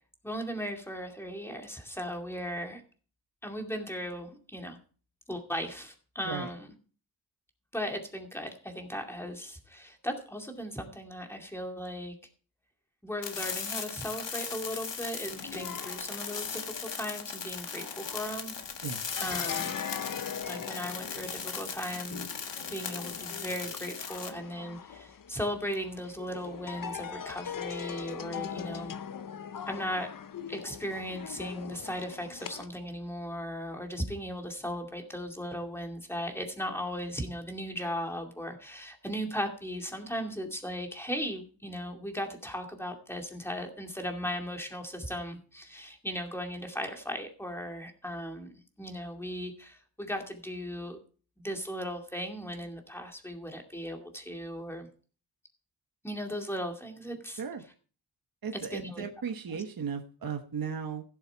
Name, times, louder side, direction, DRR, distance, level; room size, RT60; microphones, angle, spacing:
voice 1, 0.2-2.8 3.4-4.8 5.3-6.7 7.7-12.1 13.0-18.5 19.2-19.8 20.5-22.3 22.7-29.0 29.7-30.1 30.5-51.0 51.4-54.9 56.0-57.4 58.7-59.0 59.5-59.6, equal, 5° left, 3 dB, 2.3 m, -37 dB
sound 1, 13.2-24.3, left 6 dB, 60° left, 1.6 m, -38 dB
sound 2, 15.3-32.7, left 8 dB, 45° left, 0.6 m, -41 dB
voice 2, 58.4-61.0, right 6 dB, 45° right, 5 dB, 1.2 m, -36 dB
16.0 x 7.3 x 4.5 m, 0.39 s
wide cardioid pair, 125°, 47 cm